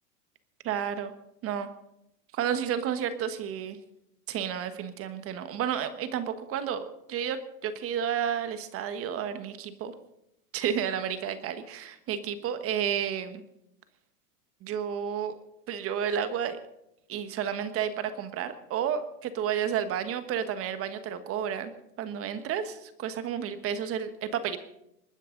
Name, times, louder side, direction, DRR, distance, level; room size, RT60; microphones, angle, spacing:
voice 1, 0.6-1.1 1.4-1.7 2.3-3.8 4.3-6.8 7.1-9.9 10.5-13.4 14.6-15.3 15.7-16.6 17.1-21.7 22.0-24.6, right 8 dB, 30° right, 10 dB, 1.4 m, -31 dB
28.0 x 9.8 x 3.9 m, 0.83 s
supercardioid pair, 135°, 47 cm